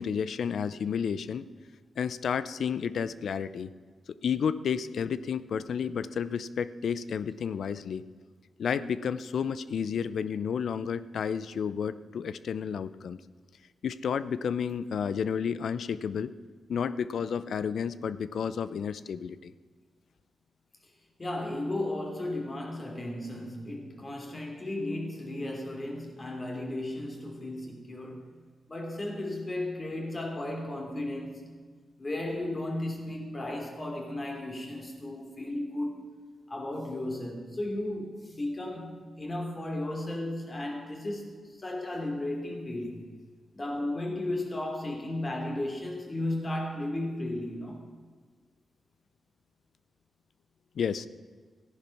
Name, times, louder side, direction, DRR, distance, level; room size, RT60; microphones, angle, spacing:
voice 1, 0.0-1.4 2.0-3.7 4.2-8.0 8.6-13.2 13.8-16.3 16.7-19.5 50.8-51.1, left 7 dB, 75° left, 0.6 m, -31 dB
voice 2, 21.2-28.3 28.7-31.4 32.0-36.1 36.5-43.0 43.5-47.8, left 1 dB, 30° left, 3.1 m, -34 dB
14.0 x 10.5 x 5.9 m
cardioid pair, 80°, 0 cm